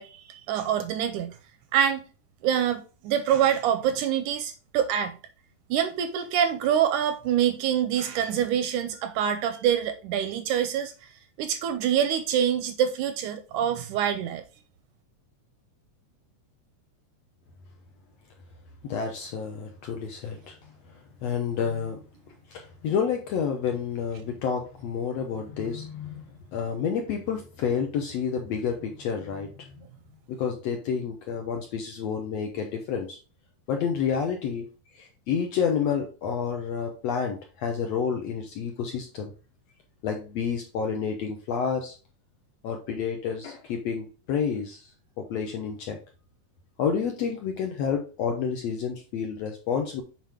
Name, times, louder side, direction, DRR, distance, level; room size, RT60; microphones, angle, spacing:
voice 1, 0.0-1.4 1.7-2.0 2.4-5.2 5.7-10.9 11.4-14.4, right 9 dB, 80° right, 1.9 m, -25 dB
voice 2, 18.8-20.7 21.2-22.0 22.5-26.2 26.5-29.7 30.3-33.2 33.7-34.7 34.9-39.3 40.0-41.9 42.6-44.8 45.2-46.0 46.8-50.0, left 6 dB, 70° left, 1.7 m, -29 dB
7.5 x 4.6 x 3.5 m
omnidirectional pair, 3.9 m